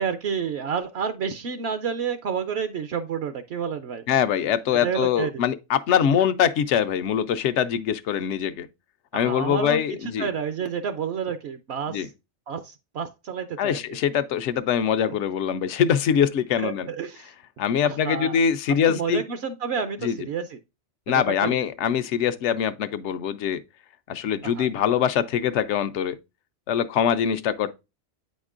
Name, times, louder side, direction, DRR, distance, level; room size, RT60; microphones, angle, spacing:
voice 1, 0.0-4.0 4.8-5.4 9.1-12.1 12.5-13.8 16.6-17.3 17.8-18.4 18.9-20.6 21.1-21.7 24.4-24.7, right 6 dB, 70° right, 0.8 m, -30 dB
voice 2, 4.1-8.7 9.1-10.3 11.9-12.1 13.6-16.9 17.6-19.2 20.0-20.2 21.1-23.6 24.1-26.2 26.7-27.7, left 8 dB, 80° left, 0.9 m, -23 dB
8.7 x 5.2 x 2.4 m
omnidirectional pair, 1.2 m